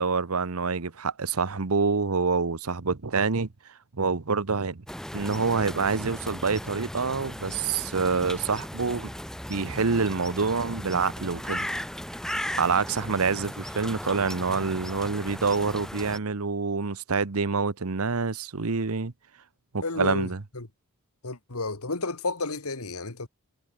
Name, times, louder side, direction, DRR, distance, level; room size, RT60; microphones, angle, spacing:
voice 1, 0.0-3.5 3.9-4.8 5.1-9.1 9.5-11.7 12.6-19.1 19.7-20.4, right 4 dB, 75° right, 1.0 m, -26 dB
sound 1, 4.9-16.2, equal, ahead, 0.8 m, -37 dB
voice 2, 19.8-20.7 21.2-23.3, left 3 dB, 80° left, 2.5 m, -32 dB
head